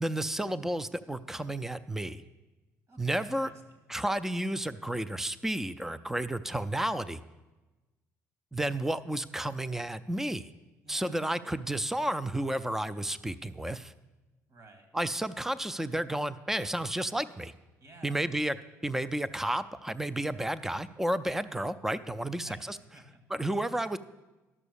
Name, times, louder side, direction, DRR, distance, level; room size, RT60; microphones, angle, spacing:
voice 1, 0.0-2.2 3.0-3.5 3.9-7.2 8.5-10.5 10.9-13.9 14.9-17.5 18.0-18.6 18.8-22.8 23.3-24.0, right 1 dB, 5° right, 14 dB, 0.5 m, -32 dB
voice 2, 2.9-3.9 10.8-11.2 14.5-14.9 17.8-18.2 22.3-23.3, right 2 dB, 50° right, 5 dB, 2.4 m, -54 dB
12.0 x 6.2 x 6.9 m, 1.1 s
supercardioid pair, 65°, 7 cm